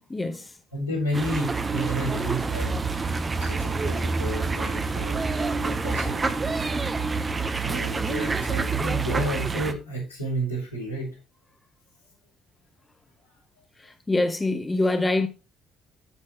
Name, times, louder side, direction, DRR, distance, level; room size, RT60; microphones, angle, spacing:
voice 1, 0.1-0.4 13.8-15.3, left 2 dB, 20° left, 1.4 m, -25 dB
voice 2, 0.7-2.7 3.4-6.4 7.6-11.2, right 1 dB, 85° left, 5.4 m, -31 dB
sound 1, 1.1-9.7, right 4 dB, 25° right, 1.3 m, -27 dB
13.0 x 7.4 x 3.2 m
figure-of-eight pair, 50°, 0 cm